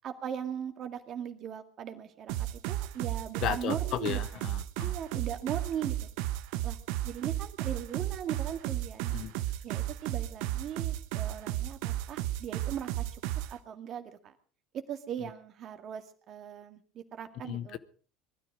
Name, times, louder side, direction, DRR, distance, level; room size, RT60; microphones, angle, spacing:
voice 1, 0.0-4.4 4.8-6.1 6.6-6.8 7.0-9.2 9.6-13.0 13.5-14.3 14.7-17.8, right 9 dB, 45° right, 7 dB, 2.1 m, -39 dB
sound 1, 2.3-13.5, right 14 dB, 65° right, 1.0 m, -34 dB
voice 2, 3.4-5.2 9.1-9.3 17.4-17.8, left 11 dB, 55° left, 15 dB, 0.9 m, -35 dB
20.0 x 13.0 x 5.0 m, 0.41 s
hypercardioid pair, 70°, 0 cm